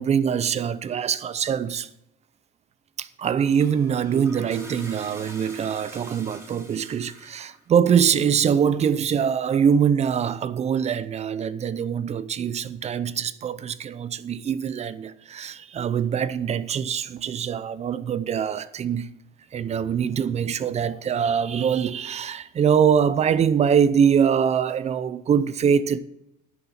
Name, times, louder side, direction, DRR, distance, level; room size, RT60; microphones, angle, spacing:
voice 1, 0.0-1.9 3.0-19.1 19.5-26.0, right 7 dB, 40° right, 0.6 m, -23 dB
Toilet flush, 3.3-7.6, right 1 dB, 15° right, 2.7 m, -44 dB
10.0 x 7.1 x 6.5 m
cardioid pair, 110°, 17 cm